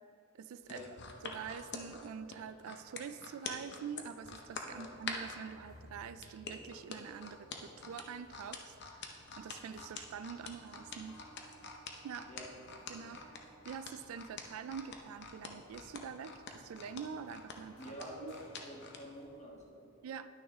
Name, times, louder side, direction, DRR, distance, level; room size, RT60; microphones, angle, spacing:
voice 1, 0.3-0.8 1.2-11.2 12.0-12.3 12.9-18.3 20.0-20.3, right 7 dB, 70° right, 13 dB, 0.3 m, -46 dB
sound 1, 0.6-5.4 6.2-19.0 19.5-19.6, left 5 dB, 50° left, 0.7 m, -45 dB
sound 2, 3.8-19.4, equal, 75° left, 1.7 m, -62 dB
voice 2, 17.8-19.9, left 1 dB, 30° left, -3 dB, 1.4 m, -48 dB
10.5 x 6.1 x 3.6 m, 2.7 s
head